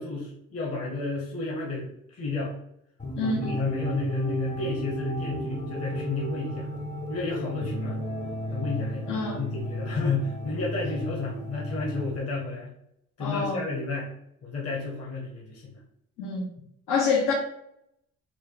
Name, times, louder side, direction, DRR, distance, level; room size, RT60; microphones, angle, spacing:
voice 1, 0.0-2.5 3.2-6.7 7.1-8.0 8.5-12.7 13.2-14.1 14.4-15.8, left 3 dB, 50° left, -2 dB, 1.0 m, -32 dB
sound 1, 3.0-12.2, equal, 25° left, 0.6 m, -33 dB
voice 2, 3.2-3.6 9.1-9.4 13.2-13.6 16.2-16.5 16.9-17.3, left 4 dB, 90° left, -2 dB, 0.7 m, -26 dB
4.3 x 2.2 x 3.1 m, 0.75 s
cardioid pair, 90°, 30 cm